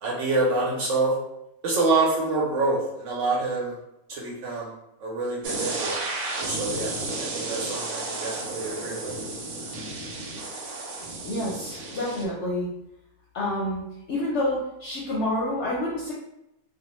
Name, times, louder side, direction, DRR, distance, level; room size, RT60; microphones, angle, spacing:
voice 1, 0.0-1.1 1.6-3.8 4.1-6.0 6.4-9.2, right 3 dB, 65° right, -4 dB, 0.9 m, -27 dB
sound 1, 5.4-12.2, right 2 dB, 85° right, 1.1 m, -32 dB
voice 2, 11.2-12.7 13.3-13.8 14.1-16.1, left 1 dB, 65° left, -5 dB, 0.8 m, -28 dB
2.4 x 2.1 x 2.9 m, 0.85 s
omnidirectional pair, 1.5 m